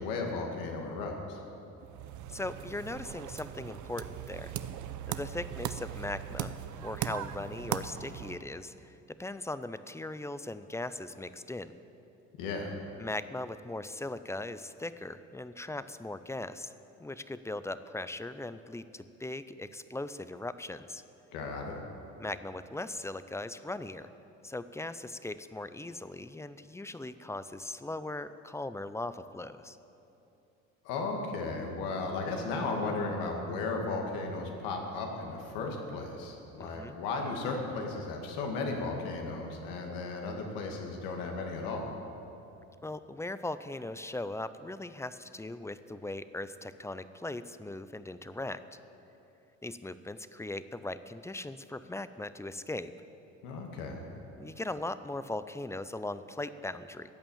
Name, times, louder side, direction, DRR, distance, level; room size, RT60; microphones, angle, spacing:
voice 1, 0.0-1.4 12.4-12.7 21.3-21.8 30.8-41.9 53.4-54.1, left 3 dB, 80° left, 1 dB, 2.2 m, -35 dB
sound 1, 1.8-8.4, right 10 dB, 60° right, 0.7 m, -39 dB
voice 2, 2.3-4.5 5.1-6.5 6.8-11.8 13.0-16.7 17.0-21.0 22.2-24.1 24.4-29.8 36.6-37.0 42.8-48.6 49.6-52.9 54.4-57.1, left 2 dB, 10° left, 13 dB, 0.5 m, -39 dB
14.5 x 8.7 x 7.2 m, 2.9 s
supercardioid pair, 80°, 33 cm